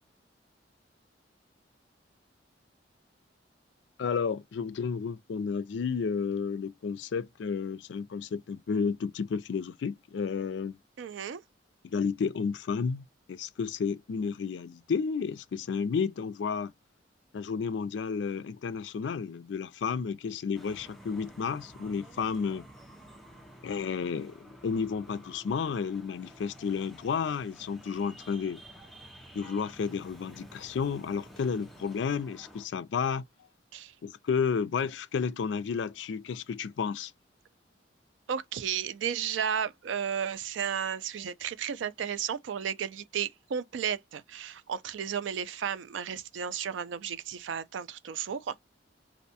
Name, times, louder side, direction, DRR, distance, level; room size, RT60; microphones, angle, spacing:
voice 1, 4.0-10.7 11.9-16.7 17.3-22.7 23.6-28.6 29.3-33.2 34.0-37.1, left 6 dB, 65° left, 0.3 m, -32 dB
voice 2, 11.0-11.4 33.7-33.9 38.3-48.6, right 8 dB, 80° right, 0.4 m, -33 dB
sound 1, 20.5-32.7, equal, ahead, 0.5 m, -52 dB
2.5 x 2.1 x 2.6 m
head